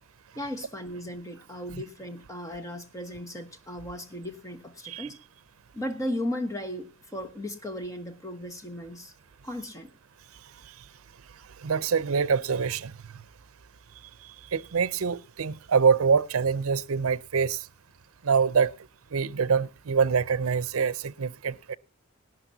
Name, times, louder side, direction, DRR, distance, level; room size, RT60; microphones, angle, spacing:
voice 1, 0.3-5.2 5.7-9.1 9.4-9.9, left 1 dB, 15° left, 1.2 m, -36 dB
voice 2, 11.6-12.9 14.2-17.7 18.2-18.7 19.1-21.8, right 5 dB, 85° right, 0.6 m, -25 dB
19.5 x 12.0 x 2.7 m
head